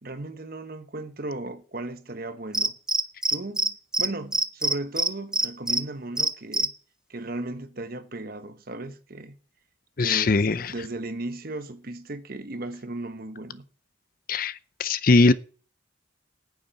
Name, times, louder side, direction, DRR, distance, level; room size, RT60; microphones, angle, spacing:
voice 1, 0.0-2.8 3.3-6.7 7.1-9.4 10.0-13.6, right 2 dB, 50° right, 1.2 m, -36 dB
Cricket, 2.5-3.7 3.9-4.1 4.3-5.8 6.2-6.7, right 1 dB, 5° right, 0.5 m, -23 dB
voice 2, 10.0-10.7 14.3-14.5 14.8-15.3, left 3 dB, 50° left, 0.6 m, -20 dB
9.5 x 7.3 x 8.9 m
head